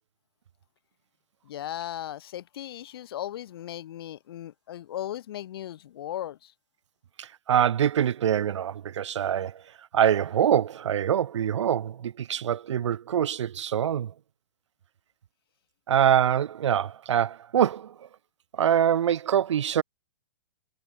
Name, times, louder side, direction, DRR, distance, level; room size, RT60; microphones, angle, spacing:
voice 1, 1.4-6.5, left 12 dB, 55° left, 5.5 m, -37 dB
voice 2, 7.2-9.6 9.9-14.1 15.9-17.9 18.5-19.8, right 9 dB, 80° right, 1.1 m, -24 dB
hypercardioid pair, 165°, 15 cm